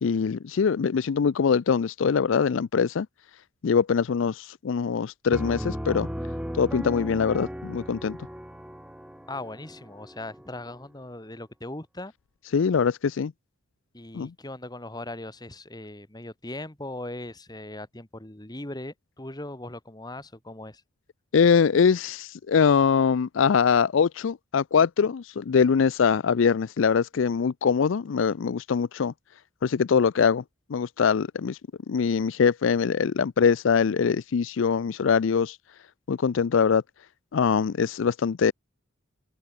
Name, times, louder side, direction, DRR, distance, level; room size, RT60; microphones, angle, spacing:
voice 1, 0.0-3.1 3.6-6.1 6.5-8.2 12.5-13.3 14.1-14.3 21.3-29.1 29.6-30.4 30.7-31.6 31.9-35.6 36.1-36.8 37.3-38.5, left 6 dB, 65° left, 0.4 m, -23 dB
Piano, 5.3-10.8, equal, 5° right, 3.4 m, -36 dB
voice 2, 9.3-12.1 13.9-20.8, left 1 dB, 20° left, 2.1 m, -39 dB
head